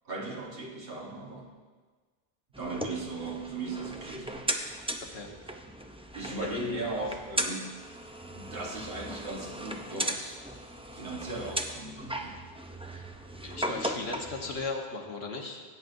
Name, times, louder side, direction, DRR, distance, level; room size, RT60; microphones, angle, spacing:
voice 1, 0.0-1.5 2.6-4.4 6.1-7.8 8.3-10.4 10.9-12.4, right 2 dB, 70° right, -2 dB, 1.5 m, -37 dB
sound 1, 2.5-14.6, right 1 dB, 10° right, 0.4 m, -37 dB
voice 2, 5.0-5.3 12.9-13.0 13.4-15.6, left 3 dB, 80° left, 1 dB, 1.4 m, -37 dB
17.0 x 8.8 x 2.7 m, 1.4 s
omnidirectional pair, 1.0 m